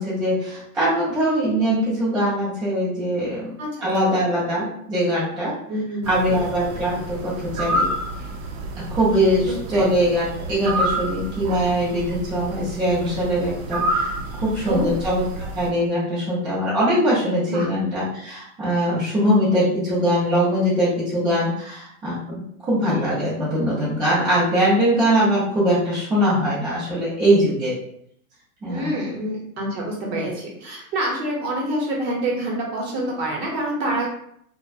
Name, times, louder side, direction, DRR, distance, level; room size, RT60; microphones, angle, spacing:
voice 1, 0.0-5.6 6.1-7.9 8.9-27.8 28.6-28.9, equal, 10° right, -11 dB, 0.6 m, -22 dB
voice 2, 3.6-4.1 5.7-6.2 9.4-9.9 14.7-14.9 17.5-17.7 28.6-34.1, right 1 dB, 45° right, -2 dB, 0.9 m, -27 dB
sound 1, 6.0-15.7, right 1 dB, 85° right, 0.6 m, -29 dB
2.5 x 2.2 x 2.5 m, 0.69 s
supercardioid pair, 155°, 43 cm